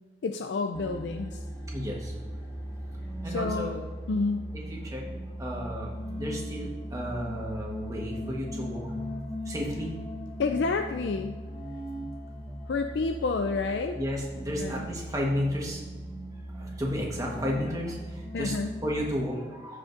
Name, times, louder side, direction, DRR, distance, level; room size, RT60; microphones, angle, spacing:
voice 1, 0.2-1.4 3.3-4.5 10.4-11.4 12.7-14.0 14.6-14.9 18.3-18.7, left 4 dB, 75° left, 5 dB, 0.4 m, -29 dB
sound 1, 0.7-19.1, equal, 15° left, 1.1 m, -38 dB
voice 2, 1.7-2.1 3.2-3.9 4.7-5.0 5.4-8.9 9.4-9.9 13.9-15.8 16.5-19.8, equal, 20° right, -2 dB, 1.2 m, -33 dB
14.5 x 5.0 x 2.6 m, 1.4 s
head